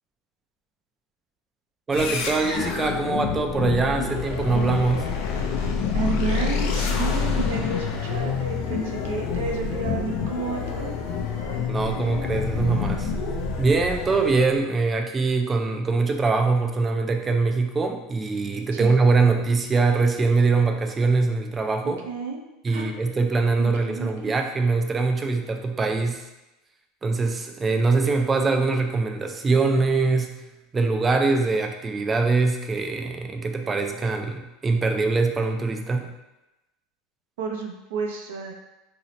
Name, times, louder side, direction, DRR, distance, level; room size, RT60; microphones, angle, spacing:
sound 1, 1.9-14.6, left 5 dB, 60° left, 0.4 m, -27 dB
voice 1, 1.9-5.1 11.7-13.1 13.6-22.0 22.6-26.3 27.0-30.3 30.7-36.1, right 3 dB, 20° right, 4 dB, 0.3 m, -23 dB
voice 2, 5.9-10.9 18.7-18.9 22.0-22.4 22.7-23.0 23.6-24.3 37.4-38.5, right 4 dB, 85° right, 1 dB, 0.5 m, -31 dB
2.7 x 2.0 x 4.0 m, 0.98 s
supercardioid pair, 135°, 0 cm